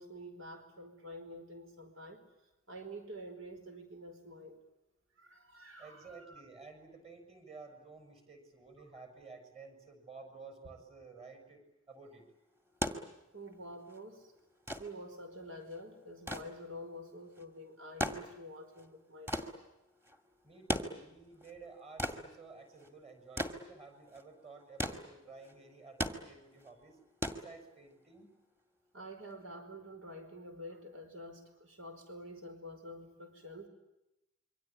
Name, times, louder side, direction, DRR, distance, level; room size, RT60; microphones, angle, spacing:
voice 1, 0.0-2.2 2.7-4.6 5.2-6.4 13.3-14.3 14.7-19.6 28.9-33.7, equal, 75° right, 6 dB, 4.7 m, -48 dB
voice 2, 5.8-12.2 20.4-27.0 27.3-28.3, right 4 dB, 30° right, 6 dB, 6.1 m, -53 dB
sound 1, 12.6-28.1 29.3-29.4, equal, 10° right, 2.1 m, -40 dB
27.5 x 24.0 x 8.6 m, 0.93 s
head